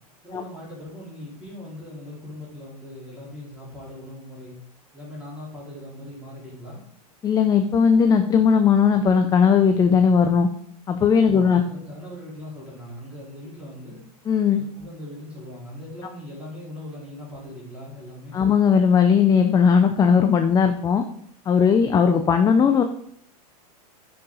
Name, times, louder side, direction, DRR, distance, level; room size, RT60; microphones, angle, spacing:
voice 1, 0.2-4.5 4.9-6.8 11.2-14.0 14.6-18.4, left 1 dB, 5° right, -7 dB, 4.1 m, -40 dB
voice 2, 7.2-10.5 10.9-11.6 14.3-14.6 18.3-21.0 21.5-22.8, left 6 dB, 20° left, 7 dB, 0.5 m, -18 dB
9.7 x 5.9 x 4.0 m, 0.67 s
supercardioid pair, 130°, 20 cm